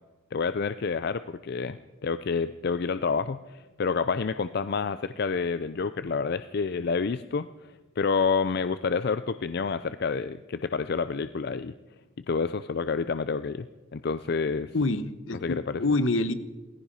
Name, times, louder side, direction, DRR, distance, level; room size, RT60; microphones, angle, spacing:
voice 1, 0.3-11.7 12.3-13.7 13.9-14.7 15.4-15.8, left 5 dB, 55° left, 13 dB, 0.5 m, -28 dB
voice 2, 14.7-16.3, left 2 dB, 75° left, 12 dB, 1.1 m, -26 dB
17.5 x 15.0 x 5.5 m, 1.2 s
head